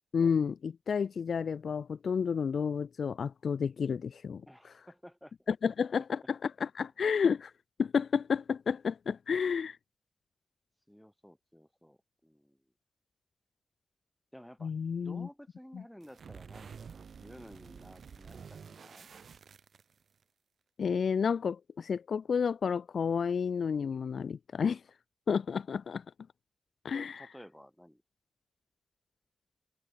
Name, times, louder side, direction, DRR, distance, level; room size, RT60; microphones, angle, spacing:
voice 1, 0.1-4.4 5.5-7.5 7.8-9.8 14.6-15.3 15.7-15.8 20.8-24.8 25.3-26.0 26.8-27.2, left 6 dB, 85° left, 0.4 m, -31 dB
voice 2, 4.5-5.5 10.9-12.6 14.3-14.7 15.0-19.1 26.9-28.0, equal, 5° left, 5.4 m, -53 dB
sound 1, 16.0-20.2, right 6 dB, 90° right, 2.9 m, -50 dB
wide cardioid pair, 140°, 0 cm